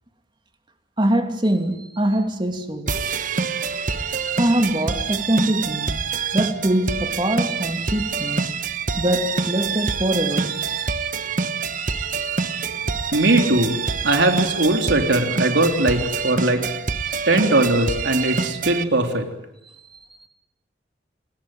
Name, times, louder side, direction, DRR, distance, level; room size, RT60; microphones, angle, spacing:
voice 1, 1.0-2.9 4.4-5.9 6.3-8.5 9.0-10.6 11.2-11.3 17.1-17.2, right 1 dB, 25° right, 2.7 m, -23 dB
sound 1, 2.9-18.8, right 5 dB, 45° right, 1.1 m, -26 dB
voice 2, 13.1-13.8 14.0-16.6 17.3-19.2, right 2 dB, 80° right, 3.6 m, -19 dB
27.5 x 19.5 x 9.5 m
head